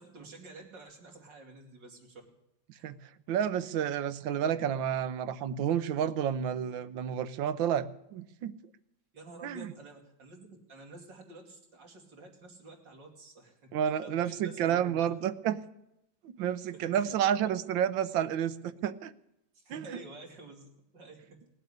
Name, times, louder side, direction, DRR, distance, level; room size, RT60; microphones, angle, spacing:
voice 1, 0.0-2.2 2.7-2.9 9.1-13.7 14.0-15.1 16.7-17.1 19.5-21.4, right 2 dB, 70° right, 1 dB, 3.5 m, -50 dB
voice 2, 3.3-8.6 9.4-9.7 13.7-15.6 16.2-19.1 19.7-19.8, right 9 dB, 85° right, 13 dB, 1.5 m, -30 dB
18.5 x 7.9 x 9.8 m, 0.85 s
omnidirectional pair, 2.0 m